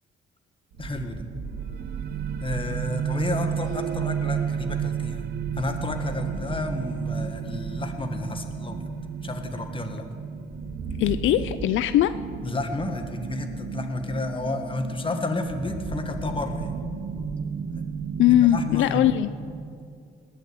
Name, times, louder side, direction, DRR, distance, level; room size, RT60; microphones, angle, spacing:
sound 1, 0.7-19.2, right 4 dB, 85° right, 2.2 m, -36 dB
voice 1, 0.8-1.2 2.4-5.2 5.5-8.9 9.2-10.1 12.4-16.7 17.7-17.8 18.3-19.1, left 2 dB, 25° left, 6 dB, 1.8 m, -31 dB
sound 2, 1.4-12.8, right 9 dB, 55° right, 0.5 m, -32 dB
voice 2, 11.0-12.1 18.2-19.3, left 12 dB, 80° left, 13 dB, 0.5 m, -20 dB
19.5 x 6.6 x 9.6 m, 2.3 s
cardioid pair, 90°, 20 cm